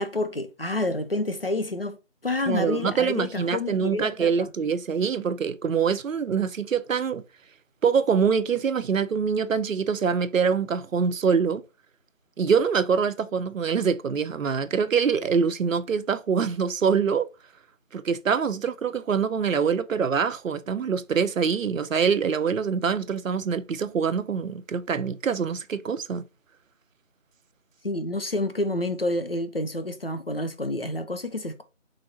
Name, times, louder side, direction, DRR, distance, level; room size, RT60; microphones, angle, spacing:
voice 1, 0.0-2.0 2.2-4.5 27.8-31.6, left 2 dB, 50° left, 0.6 m, -28 dB
voice 2, 2.5-7.2 7.8-11.6 12.4-17.3 17.9-26.2, right 6 dB, 90° right, 0.5 m, -24 dB
3.9 x 3.2 x 2.7 m
figure-of-eight pair, 170°, 38 cm